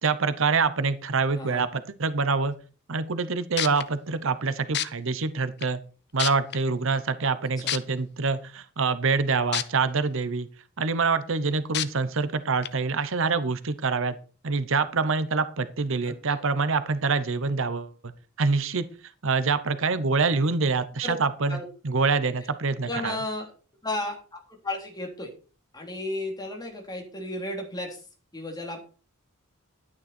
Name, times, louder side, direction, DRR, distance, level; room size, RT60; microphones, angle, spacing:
voice 1, 0.0-2.5 2.9-5.8 6.1-10.5 10.8-14.2 14.4-18.1 18.4-18.8 19.2-21.6 21.8-23.2, right 4 dB, 65° right, 12 dB, 0.9 m, -25 dB
sound 1, 3.2-3.3 3.6-3.8 4.7-4.9 5.6-5.7 6.2-6.6 7.7-7.8 9.5-9.6 10.1-10.2 11.7-11.9 12.6-12.7, left 11 dB, 55° left, 0.7 m, -27 dB
voice 2, 22.9-23.5 23.8-25.3 25.7-28.0 28.3-28.9, left 1 dB, 20° left, 1 dB, 3.3 m, -34 dB
11.5 x 9.7 x 4.4 m, 0.36 s
head